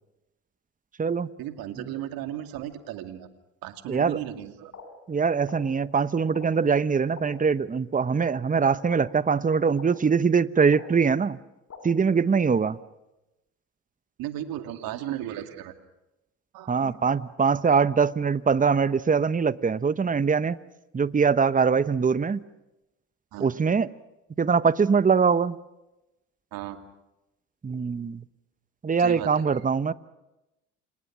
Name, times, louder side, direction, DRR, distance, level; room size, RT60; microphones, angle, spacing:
voice 1, 1.4-3.3 3.6-4.7 14.2-15.7 16.5-17.0 23.3-23.5 26.5-26.8 29.0-29.4, right 12 dB, 65° right, 6 dB, 2.6 m, -35 dB
voice 2, 3.9-4.2 5.1-11.4 11.8-12.8 16.7-20.6 20.9-22.4 23.4-23.9 24.4-25.6 27.6-28.2 28.8-29.9, right 5 dB, 20° right, 15 dB, 1.0 m, -23 dB
sound 1, 4.7-4.8 5.5-5.6 6.3-6.5 7.2-7.3 8.1-8.2 8.9-9.0 9.8-9.9 10.7-10.8 11.7-11.8, left 7 dB, 40° left, 6.1 m, -43 dB
29.5 x 26.5 x 6.2 m, 0.97 s
hypercardioid pair, 60°, 38 cm